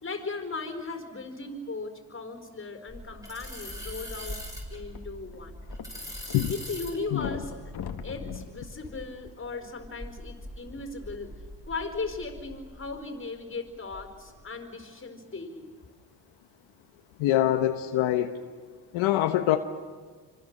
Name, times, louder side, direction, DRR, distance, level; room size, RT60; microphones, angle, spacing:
voice 1, 0.0-4.4 4.7-5.5 6.5-7.7 8.0-15.7, left 3 dB, 25° left, 6 dB, 4.4 m, -37 dB
sound 1, 2.9-13.0 13.4-14.4, equal, 5° right, 6.7 m, -42 dB
sound 2, 4.9-6.4 6.6-6.7 7.1-9.7 10.4-10.5, left 7 dB, 55° left, 2.2 m, -40 dB
voice 2, 17.2-18.3 18.9-19.6, left 13 dB, 85° left, 6 dB, 1.3 m, -24 dB
27.0 x 25.5 x 6.7 m, 1.5 s
cardioid pair, 90°, 46 cm